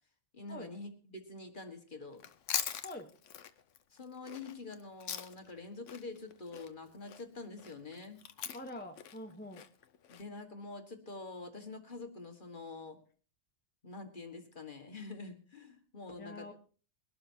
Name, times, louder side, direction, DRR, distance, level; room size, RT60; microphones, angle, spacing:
voice 1, 0.3-2.2 3.9-8.2 10.1-13.0 13.8-16.5, left 3 dB, 45° left, 5 dB, 1.8 m, -46 dB
Chewing mastication, 2.1-5.6 5.9-10.2, left 9 dB, 85° left, 1.1 m, -41 dB
voice 2, 8.5-9.6 16.2-16.5, left 1 dB, 10° left, 4 dB, 0.9 m, -45 dB
22.5 x 12.0 x 2.8 m, 0.40 s
omnidirectional pair, 1.2 m